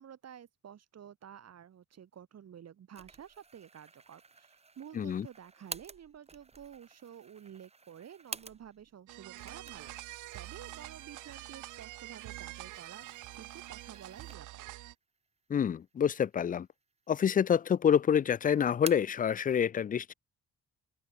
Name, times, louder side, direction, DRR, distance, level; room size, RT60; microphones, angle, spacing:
voice 1, 0.0-13.1 13.3-14.6, right 9 dB, 55° right, 3.3 m, -51 dB
sound 1, 2.9-8.9 9.3-14.7 15.2-15.3 16.1-16.8 17.1-17.8 18.1-19.2, right 4 dB, 20° right, 1.2 m, -50 dB
voice 2, 5.0-5.3 15.5-16.7 17.1-20.1, left 8 dB, 30° left, 0.4 m, -27 dB
sound 2, 9.1-14.9, right 17 dB, 85° right, 0.7 m, -46 dB
open air
cardioid pair, 90°, 30 cm